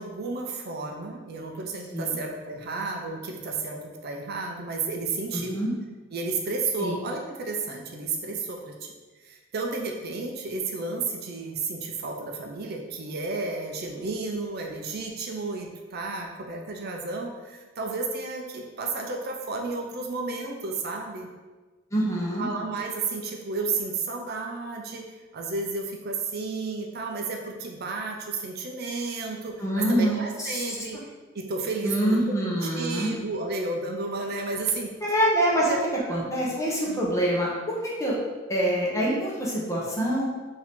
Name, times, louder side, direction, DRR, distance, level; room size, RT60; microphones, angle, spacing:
voice 1, 0.0-5.6 6.1-9.0 9.2-21.3 22.4-25.1 25.3-34.9 35.7-36.3 36.9-37.1, right 3 dB, 50° right, 2 dB, 0.5 m, -32 dB
voice 2, 5.3-5.7 6.8-6.9 21.9-22.4 29.6-30.6 31.8-33.1 35.0-35.8 36.1-38.2 38.5-40.3, right 1 dB, 15° left, -5 dB, 0.9 m, -25 dB
4.7 x 2.7 x 3.6 m, 1.3 s
head